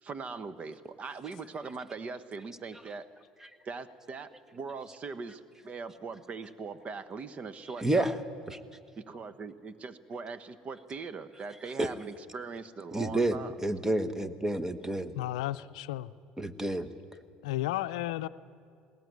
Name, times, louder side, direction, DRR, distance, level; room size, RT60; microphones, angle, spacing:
voice 1, 0.0-3.1 3.6-8.1 9.0-13.5, right 4 dB, 40° right, 14 dB, 1.2 m, -41 dB
voice 2, 7.8-8.1 11.8-11.9 12.9-15.1 16.4-16.9, right 1 dB, 15° right, 11 dB, 1.4 m, -29 dB
voice 3, 15.1-16.1 17.4-18.3, left 15 dB, 80° left, 13 dB, 0.5 m, -33 dB
20.0 x 18.0 x 9.5 m, 2.3 s
hypercardioid pair, 75°, 3 cm